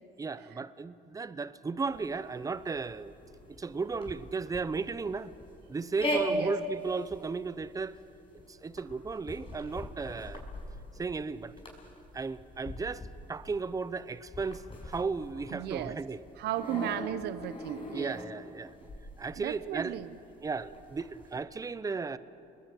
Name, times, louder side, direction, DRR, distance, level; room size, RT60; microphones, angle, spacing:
voice 1, 0.2-3.1 3.5-5.3 5.7-8.0 8.5-10.4 11.0-11.5 12.1-16.2 17.9-18.9 19.2-20.0 20.4-22.2, right 4 dB, 20° right, 0.8 m, -35 dB
sound 1, 1.9-21.4, equal, 30° left, 5.8 m, -40 dB
voice 2, 15.5-16.0 16.4-18.2 19.4-20.2, right 12 dB, 75° right, 0.9 m, -35 dB
29.5 x 21.0 x 8.5 m
cardioid pair, 110°, 17 cm